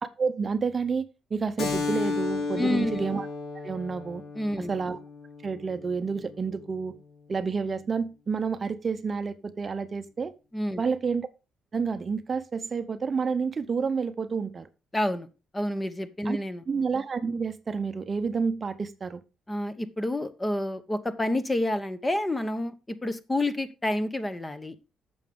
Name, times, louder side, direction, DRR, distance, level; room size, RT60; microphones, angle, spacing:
voice 1, 0.2-3.3 3.5-4.2 4.7-5.0 5.4-6.9 7.3-10.3 10.8-11.3 11.7-14.7 16.3-16.4 16.7-19.2, right 5 dB, 35° right, 11 dB, 0.7 m, -29 dB
Keyboard (musical), 1.6-6.7, left 4 dB, 65° left, 2.7 m, -34 dB
voice 2, 2.6-3.0 4.3-4.7 10.5-10.8 14.9-15.3 15.5-16.6 19.5-24.8, left 1 dB, 15° left, 12 dB, 1.0 m, -29 dB
8.9 x 7.0 x 3.6 m, 0.29 s
cardioid pair, 105°, 0 cm